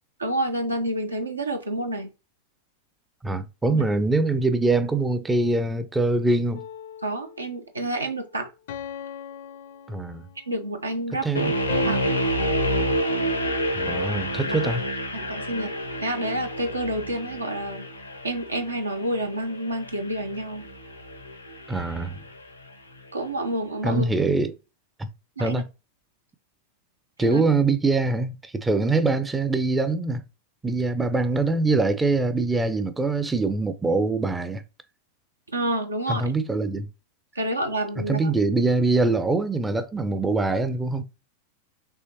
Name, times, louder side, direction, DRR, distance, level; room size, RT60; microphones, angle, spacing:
voice 1, 0.2-2.1 3.7-3.8 7.0-8.5 10.5-11.5 11.9-12.0 14.0-14.1 14.5-14.6 15.1-15.7 16.0-17.9 18.2-20.7 23.1-24.1 25.4-25.6 27.2-27.4 35.5-36.3 37.4-38.3, right 1 dB, 80° right, 0.8 m, -29 dB
voice 2, 3.2-6.6 9.9-10.2 11.2-11.5 13.7-14.8 21.7-22.2 23.8-24.6 25.0-25.1 25.4-25.7 27.2-30.2 30.6-34.6 36.1-36.9 38.1-41.0, right 3 dB, 10° right, 0.5 m, -23 dB
sound 1, 6.5-7.6 8.7-10.6 11.7-12.1, left 10 dB, 55° left, 0.6 m, -38 dB
sound 2, 11.4-22.4, equal, 85° left, 0.8 m, -29 dB
5.5 x 3.1 x 2.9 m
figure-of-eight pair, 90°, 0 cm